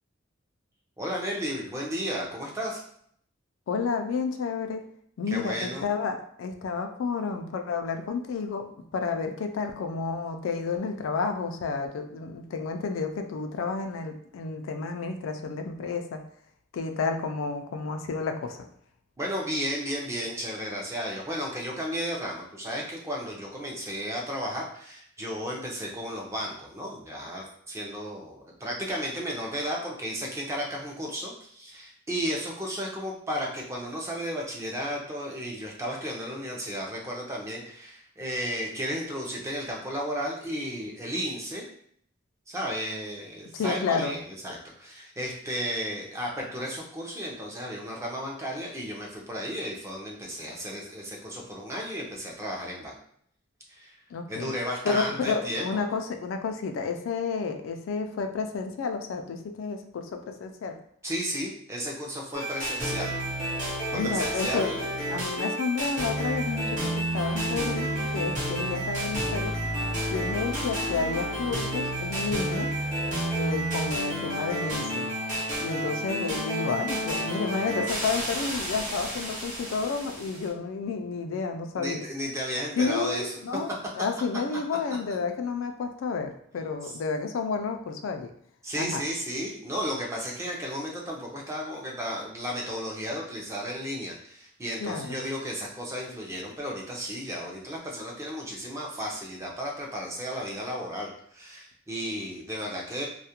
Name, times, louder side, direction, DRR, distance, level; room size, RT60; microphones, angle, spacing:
voice 1, 1.0-2.8 5.3-5.8 19.2-41.7 42.5-53.0 53.7-54.0 54.3-55.8 61.0-63.2 63.9-64.9 81.8-83.4 86.8-86.9 88.6-103.1, equal, 15° right, -2 dB, 0.5 m, -34 dB
voice 2, 3.7-4.8 5.2-16.2 16.7-18.6 43.5-44.2 54.1-54.5 54.8-60.8 63.9-64.7 65.1-69.5 70.1-72.7 73.3-75.1 75.6-82.0 82.8-88.3 88.7-89.0 94.8-95.2, left 5 dB, 80° left, 6 dB, 0.3 m, -31 dB
sound 1, 62.3-80.5, right 1 dB, 40° right, 0.8 m, -30 dB
2.3 x 2.1 x 2.8 m, 0.65 s
head